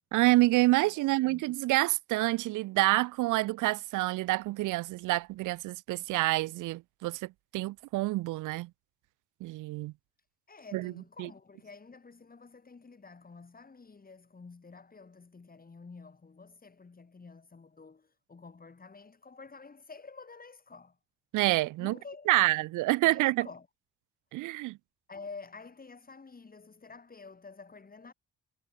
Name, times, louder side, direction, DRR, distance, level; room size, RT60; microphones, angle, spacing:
voice 1, 0.1-8.7 9.4-9.9 10.7-10.9 11.2-11.3 21.3-22.0 22.3-23.5 24.3-24.8, right 19 dB, 85° right, 0.5 m, -27 dB
voice 2, 0.8-1.5 10.5-21.0 21.8-22.6 23.0-23.7 25.1-28.1, left 4 dB, 30° left, 7.7 m, -50 dB
cardioid pair, 90°, 30 cm